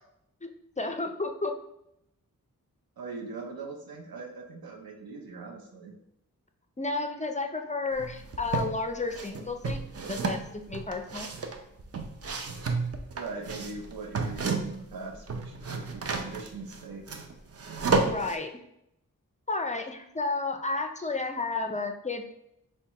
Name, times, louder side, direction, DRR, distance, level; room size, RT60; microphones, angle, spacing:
voice 1, 0.8-1.5 6.8-9.8 10.1-11.3 18.0-18.5 19.5-22.3, left 3 dB, 20° left, 5 dB, 0.4 m, -32 dB
voice 2, 3.0-5.9 13.1-17.0, right 4 dB, 85° right, 2 dB, 0.7 m, -41 dB
sound 1, 8.0-8.7 9.1-14.9 15.2-18.4, right 4 dB, 45° right, 0.5 m, -31 dB
5.3 x 2.2 x 2.9 m, 0.79 s
cardioid pair, 45°, 35 cm